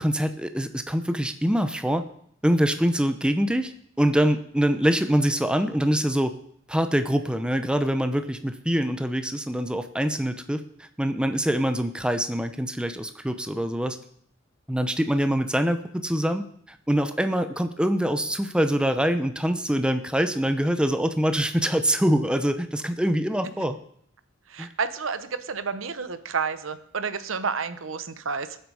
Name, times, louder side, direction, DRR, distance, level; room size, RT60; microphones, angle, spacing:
voice 1, 0.0-2.0 2.4-3.7 4.0-6.3 6.7-10.6 11.0-14.0 14.7-23.8 24.6-24.7, equal, 5° right, 9 dB, 0.7 m, -24 dB
voice 2, 24.5-28.6, right 5 dB, 85° right, 12 dB, 0.9 m, -30 dB
19.5 x 7.9 x 4.8 m, 0.65 s
head